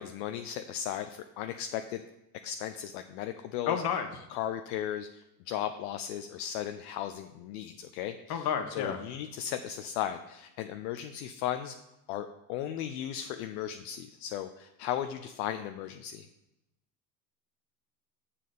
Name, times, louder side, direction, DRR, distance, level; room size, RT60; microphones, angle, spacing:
voice 1, 0.0-2.0 2.4-3.8 4.3-11.7 12.1-16.3, left 10 dB, 70° left, 8 dB, 0.7 m, -36 dB
voice 2, 3.7-4.1 8.3-9.0, left 8 dB, 50° left, 5 dB, 1.4 m, -30 dB
7.2 x 4.2 x 6.8 m, 0.92 s
hypercardioid pair, 80°, 48 cm